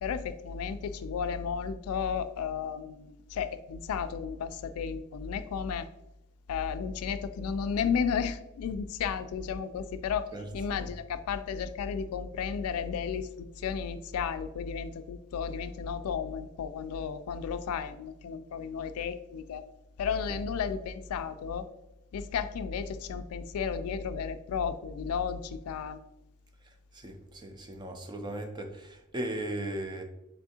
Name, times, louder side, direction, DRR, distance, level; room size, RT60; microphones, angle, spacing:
voice 1, 0.0-5.9 6.5-10.3 10.5-19.7 20.0-21.7 22.1-26.0, left 6 dB, 75° left, 0.3 m, -33 dB
voice 2, 26.9-30.0, right 1 dB, 20° right, 0.4 m, -37 dB
4.2 x 3.5 x 2.7 m
head